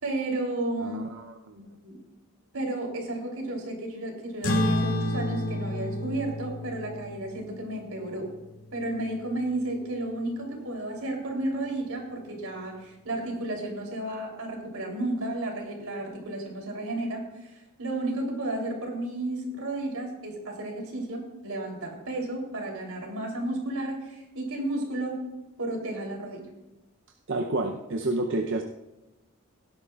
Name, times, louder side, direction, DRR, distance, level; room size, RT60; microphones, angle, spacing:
voice 1, 0.0-1.0 1.5-2.0 2.5-8.3 8.7-17.5 17.8-25.2 25.6-26.5, right 1 dB, 80° right, 1 dB, 3.3 m, -32 dB
voice 2, 0.8-1.7 27.3-28.6, right 2 dB, 55° right, 3 dB, 0.7 m, -30 dB
sound 1, 4.4-9.3, left 1 dB, 90° left, 2.3 m, -30 dB
17.5 x 11.0 x 2.4 m, 1.0 s
head